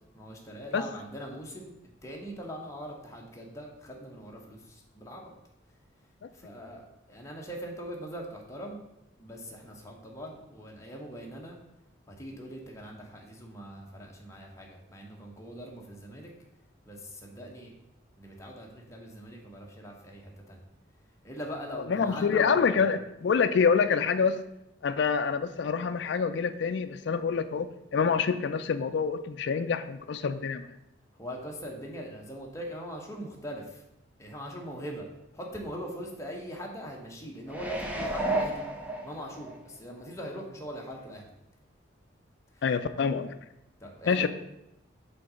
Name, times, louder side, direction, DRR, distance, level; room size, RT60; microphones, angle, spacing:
voice 1, 0.1-1.7 2.0-5.3 6.3-8.8 9.2-11.6 12.1-16.3 16.9-17.7 18.2-20.6 21.2-22.9 31.2-33.8 34.2-35.1 35.3-38.6 39.0-41.3 42.5-42.6 43.8-44.3, equal, 15° left, -1 dB, 1.0 m, -41 dB
voice 2, 21.9-24.4 24.8-30.7 42.6-43.3 44.1-44.3, left 6 dB, 60° left, 9 dB, 0.3 m, -26 dB
sound 1, 37.5-39.6 40.0-40.1, right 2 dB, 5° right, 0.6 m, -32 dB
5.3 x 3.8 x 5.5 m, 0.86 s
head